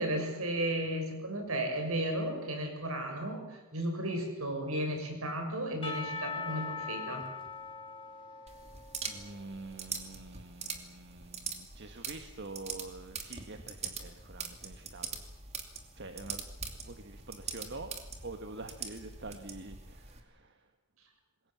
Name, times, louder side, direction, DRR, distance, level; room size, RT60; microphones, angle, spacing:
voice 1, 0.0-7.3, right 1 dB, 75° right, 4 dB, 6.9 m, -34 dB
Percussion / Church bell, 5.8-9.8, left 4 dB, 25° left, 2.5 m, -41 dB
sound 1, 8.5-20.2, right 5 dB, 30° right, 2.7 m, -43 dB
voice 2, 9.1-15.2 16.0-16.4 16.8-17.9 18.2-20.6, right 2 dB, 55° right, 6 dB, 1.6 m, -46 dB
27.0 x 21.5 x 7.4 m, 1.0 s
head